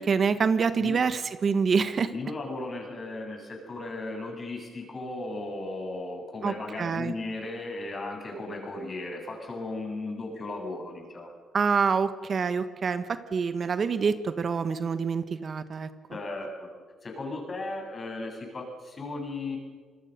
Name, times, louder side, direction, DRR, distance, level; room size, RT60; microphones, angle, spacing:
voice 1, 0.0-2.1 6.4-7.1 11.5-15.9, right 5 dB, 45° right, 11 dB, 1.3 m, -26 dB
voice 2, 2.1-11.3 16.1-16.7 17.0-19.6, left 2 dB, 35° left, 2 dB, 7.8 m, -36 dB
26.5 x 20.0 x 6.7 m, 1.5 s
cardioid pair, 90°, 0 cm